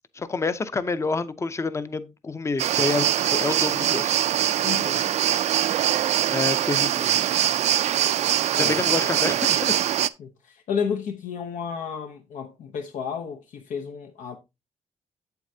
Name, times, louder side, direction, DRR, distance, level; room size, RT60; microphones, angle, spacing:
voice 1, 0.1-4.1 6.3-7.1 8.6-9.7, left 4 dB, 20° left, 0.5 m, -28 dB
sound 1, 2.6-10.1, right 11 dB, 65° right, 0.4 m, -23 dB
voice 2, 4.6-5.1 6.7-7.2 8.5-9.2 10.2-14.4, left 7 dB, 85° left, 0.8 m, -32 dB
8.1 x 8.0 x 2.7 m
wide cardioid pair, 140°, 13 cm